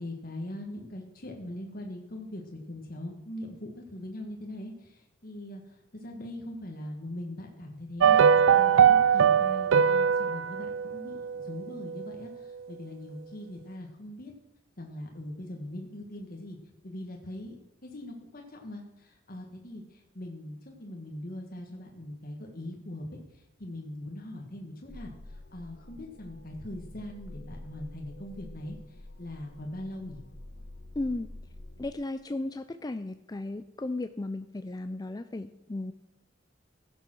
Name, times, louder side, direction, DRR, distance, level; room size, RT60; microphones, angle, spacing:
voice 1, 0.0-14.3 14.8-16.6 16.8-17.5 17.8-23.1 23.3-30.2, left 1 dB, 50° left, 1 dB, 1.6 m, -41 dB
sound 1, 8.0-12.3 12.6-12.7, right 7 dB, 85° right, 0.4 m, -22 dB
sound 2, 24.9-31.9, left 1 dB, 70° left, 1.9 m, -47 dB
voice 2, 31.0-31.3 31.8-35.9, left 2 dB, 20° left, 10 dB, 0.4 m, -35 dB
15.5 x 6.9 x 6.2 m, 0.87 s
head